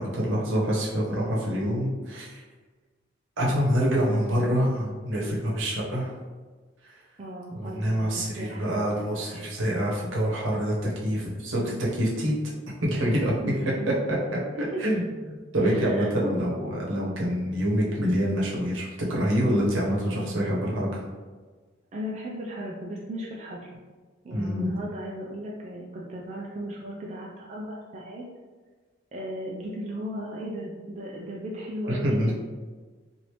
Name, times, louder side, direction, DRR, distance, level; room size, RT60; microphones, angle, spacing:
voice 1, 0.0-2.4 3.4-6.1 6.8-7.0 7.5-11.6 11.9-12.3 12.8-13.3 14.1-14.2 14.5-21.0 24.3-24.7 31.9-32.3, equal, 80° right, -4 dB, 0.9 m, -26 dB
voice 2, 4.0-4.4 7.2-8.7 11.5-11.9 13.4-14.0 14.6-14.8 15.6-16.3 21.9-23.7 24.2-28.2 29.1-32.3, equal, 35° right, -3 dB, 0.3 m, -36 dB
3.0 x 2.6 x 3.2 m, 1.4 s
head